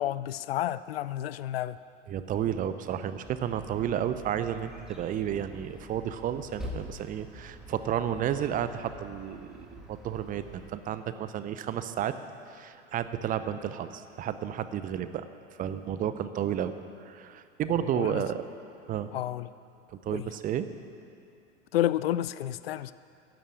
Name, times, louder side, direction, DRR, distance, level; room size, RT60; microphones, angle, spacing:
voice 1, 0.0-1.8 17.7-18.2 19.1-19.5 20.1-20.3 21.7-22.9, left 13 dB, 55° left, 16 dB, 0.5 m, -30 dB
voice 2, 2.1-12.1 12.5-15.3 15.6-16.7 17.0-18.4 18.9-19.1 20.0-20.7, right 10 dB, 25° right, 11 dB, 0.7 m, -32 dB
sound 1, 3.2-10.7, equal, ahead, 1.9 m, -46 dB
14.0 x 10.0 x 8.7 m, 2.5 s
figure-of-eight pair, 95°, 36 cm